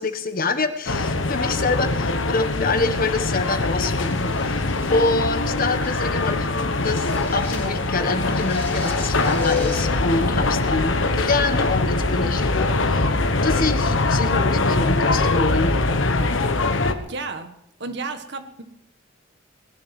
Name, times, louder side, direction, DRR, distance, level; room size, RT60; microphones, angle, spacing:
voice 1, 0.0-13.1 13.4-15.8, left 3 dB, 50° left, 8 dB, 1.4 m, -26 dB
sound 1, 0.9-16.9, left 3 dB, 80° left, 1.4 m, -22 dB
sound 2, 3.8-5.2 5.8-6.1 6.8-7.8 8.2-9.9, left 2 dB, 10° left, 3.3 m, -40 dB
voice 2, 17.0-17.5 17.8-18.6, right 3 dB, 65° right, 8 dB, 1.6 m, -32 dB
19.5 x 11.0 x 6.0 m, 0.79 s
head